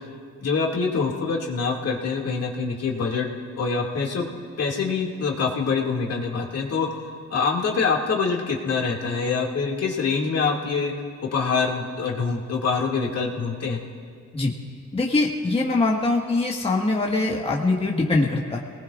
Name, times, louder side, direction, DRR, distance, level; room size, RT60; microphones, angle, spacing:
voice 1, 0.4-3.3 3.6-4.3 4.6-6.9 7.3-10.9 11.2-13.8, left 5 dB, 55° left, -1 dB, 2.3 m, -25 dB
voice 2, 14.9-18.6, left 2 dB, 20° left, -1 dB, 1.6 m, -23 dB
28.0 x 19.5 x 2.5 m, 2.1 s
cardioid pair, 90°, 30 cm